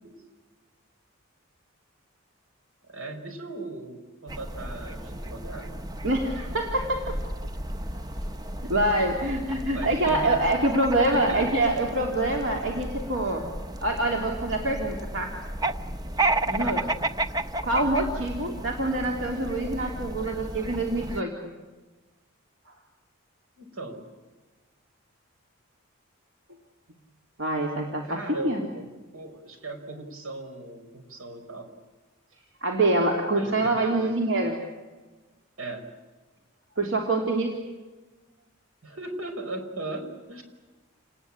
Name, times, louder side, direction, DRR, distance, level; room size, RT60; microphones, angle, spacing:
voice 1, 2.9-5.8 7.9-8.0 9.7-10.7 11.0-11.5 16.6-16.9 23.6-24.0 28.0-28.9 29.1-31.7 33.3-34.1 35.6-35.9 38.8-40.4, right 2 dB, 75° right, 6 dB, 5.2 m, -38 dB
sound 1, 4.3-21.2, right 2 dB, 20° right, 0.8 m, -33 dB
voice 2, 6.0-7.2 8.6-13.5 13.8-15.3 16.4-16.8 17.6-21.3 27.4-28.6 32.6-34.6 36.8-37.6, right 2 dB, 60° right, 0 dB, 3.3 m, -25 dB
29.0 x 20.0 x 8.8 m, 1.3 s
head